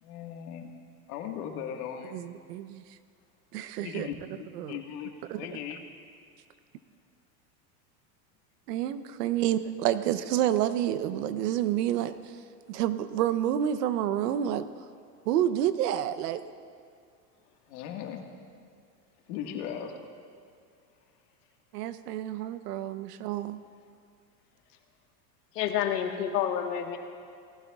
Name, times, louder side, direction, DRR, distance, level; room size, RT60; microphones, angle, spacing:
voice 1, 0.0-0.7 1.1-2.2 3.8-5.8 17.7-18.3 19.3-20.0, left 8 dB, 65° left, 3 dB, 1.8 m, -38 dB
voice 2, 2.1-2.8 3.5-4.1 4.5-4.8 5.3-5.4 8.7-12.1 12.7-14.6 15.3-16.4 21.7-23.6, right 11 dB, 80° right, 13 dB, 0.8 m, -29 dB
voice 3, 25.5-27.0, left 9 dB, 85° left, 4 dB, 1.5 m, -28 dB
19.0 x 15.5 x 2.4 m, 2.4 s
supercardioid pair, 120°, 47 cm